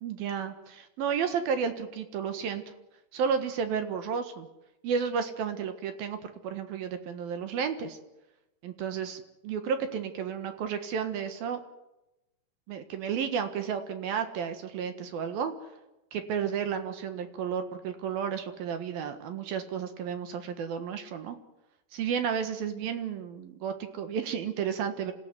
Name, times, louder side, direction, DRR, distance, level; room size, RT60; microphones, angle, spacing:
voice 1, 0.0-2.6 3.1-4.5 4.8-8.0 8.6-11.6 12.7-15.5 16.1-21.4 21.9-25.1, right 7 dB, 65° right, 8 dB, 3.0 m, -32 dB
26.0 x 16.0 x 9.5 m, 0.97 s
omnidirectional pair, 5.0 m